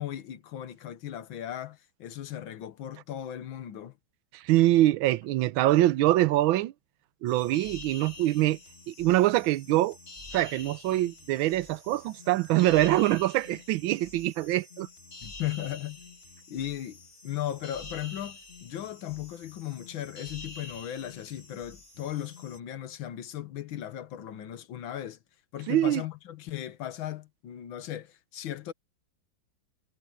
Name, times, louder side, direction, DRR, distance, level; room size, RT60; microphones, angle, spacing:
voice 1, 0.0-4.0 15.2-16.0 16.5-17.0 17.2-25.2 25.5-28.7, left 12 dB, 85° left, 1.8 m, -37 dB
voice 2, 4.3-6.7 7.2-8.6 8.9-10.0 10.3-14.9 25.7-26.0, right 15 dB, 90° right, 1.4 m, -24 dB
sound 1, 7.3-22.6, left 3 dB, 30° left, 2.5 m, -48 dB
omnidirectional pair, 2.1 m